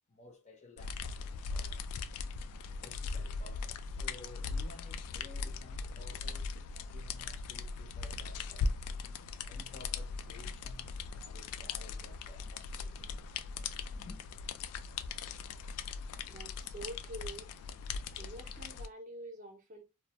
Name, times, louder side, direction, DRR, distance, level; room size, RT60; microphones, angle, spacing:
voice 1, 0.1-1.8 2.4-8.7 9.4-13.3 13.9-14.2, left 2 dB, 30° left, 0.5 m, -55 dB
sound 1, 0.8-18.9, left 4 dB, 90° left, 0.3 m, -39 dB
sound 2, 10.4-10.9 12.4-12.9 13.5-13.9 14.2-14.3, right 3 dB, 80° right, 0.5 m, -64 dB
voice 2, 16.3-17.5 18.2-19.8, right 1 dB, 35° right, 0.5 m, -47 dB
2.4 x 2.1 x 2.8 m
head